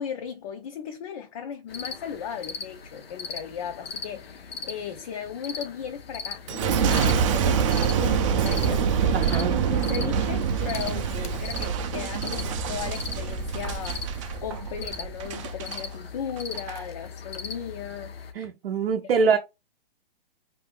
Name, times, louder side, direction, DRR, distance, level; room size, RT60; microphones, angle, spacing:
voice 1, 0.0-14.1 14.4-18.1 18.8-19.0 19.2-19.4, left 8 dB, 40° left, 0.4 m, -36 dB
sound 1, 1.7-18.3, left 5 dB, 90° left, 0.7 m, -39 dB
Boom, 6.5-15.8 16.4-16.8, right 7 dB, 35° right, 0.4 m, -26 dB
voice 2, 9.1-9.5 18.3-19.4, right 5 dB, 85° right, 0.6 m, -24 dB
2.6 x 2.4 x 3.4 m
hypercardioid pair, 140°, 29 cm